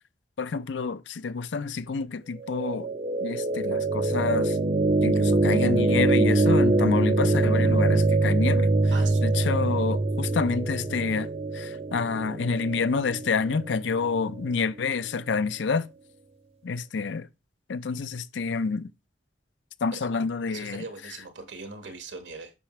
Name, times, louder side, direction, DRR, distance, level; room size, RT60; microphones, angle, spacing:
voice 1, 0.4-2.9 3.2-4.6 5.0-8.9 9.2-15.9 16.6-17.3 17.7-18.9 19.8-20.8, left 5 dB, 70° left, 0.5 m, -28 dB
sound 1, 2.4-14.5, right 2 dB, 35° right, 0.5 m, -24 dB
voice 2, 8.9-9.4 19.9-20.1 20.5-22.5, right 4 dB, 75° right, 1.4 m, -41 dB
8.1 x 5.7 x 3.1 m
head